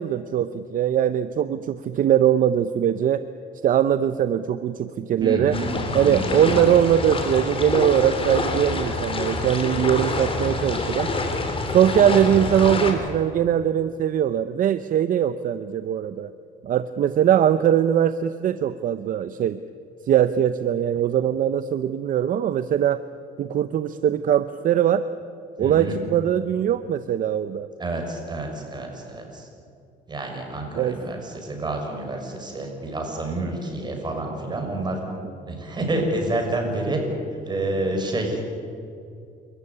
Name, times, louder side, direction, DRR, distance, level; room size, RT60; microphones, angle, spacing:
voice 1, 0.0-3.2 3.6-5.6 5.9-11.1 11.7-16.3 16.6-19.6 20.1-23.0 23.4-25.1 25.6-27.7 30.7-31.0, right 10 dB, 55° right, 12 dB, 0.8 m, -21 dB
voice 2, 5.2-5.7 5.9-6.7 25.6-25.9 27.8-29.5 30.1-35.0 35.5-37.0 37.4-38.5, right 2 dB, 25° right, 2 dB, 6.5 m, -28 dB
sound 1, 5.5-12.9, left 3 dB, 30° left, 3.8 m, -27 dB
29.0 x 14.5 x 9.9 m, 2.5 s
cardioid pair, 110°, 17 cm